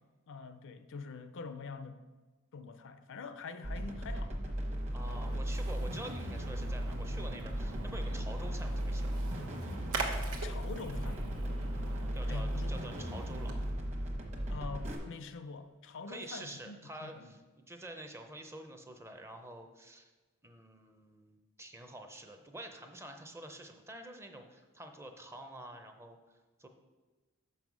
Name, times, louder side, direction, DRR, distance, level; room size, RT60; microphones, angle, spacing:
voice 1, 0.3-2.0 2.5-4.4 10.3-11.2 12.3-12.8 14.5-17.4, left 4 dB, 60° left, 10 dB, 0.4 m, -45 dB
sound 1, 3.6-14.9, equal, 30° right, 1.1 m, -36 dB
voice 2, 4.9-9.1 12.1-13.6 16.1-20.1 20.4-26.7, right 1 dB, 10° right, 5 dB, 0.6 m, -48 dB
Splash splatter, 5.0-13.7, right 3 dB, 85° right, 1.0 m, -43 dB
5.5 x 5.4 x 6.1 m, 1.2 s
head